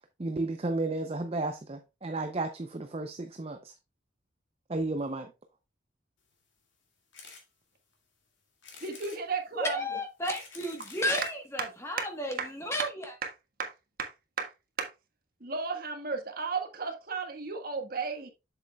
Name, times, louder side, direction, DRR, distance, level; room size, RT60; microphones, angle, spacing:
voice 1, 0.2-3.7 4.7-5.3, right 2 dB, 30° right, 0.5 m, -33 dB
sound 1, 7.1-7.4 7.9-8.0 8.6-9.2 10.0-11.4 12.2-12.3 12.5-12.6 12.8-12.9, left 5 dB, 65° left, 2.1 m, -49 dB
voice 2, 8.8-9.8 12.0-12.1 12.4-12.5 13.2-13.3 13.6-13.7 14.0-14.1 14.4-14.5 14.8-14.9 15.4-18.3, right 4 dB, 45° right, 1.4 m, -34 dB
voice 3, 9.6-13.0, equal, 15° left, 1.2 m, -33 dB
7.5 x 7.5 x 2.3 m
head